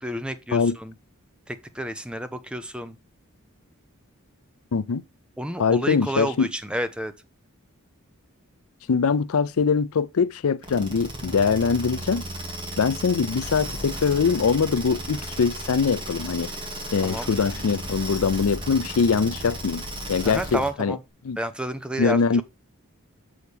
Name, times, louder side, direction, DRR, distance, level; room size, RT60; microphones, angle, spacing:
voice 1, 0.0-0.9 1.5-3.0 5.4-7.1 17.0-17.3 20.2-21.0 21.4-22.4, right 1 dB, 5° right, 0.7 m, -30 dB
voice 2, 4.7-5.0 5.6-6.5 8.9-12.2 12.8-16.5 16.9-19.8 20.1-21.0 21.3-21.4 22.0-22.4, left 5 dB, 75° left, 0.5 m, -22 dB
sound 1, 10.6-20.8, right 1 dB, 25° right, 2.2 m, -34 dB
7.0 x 6.3 x 3.4 m
head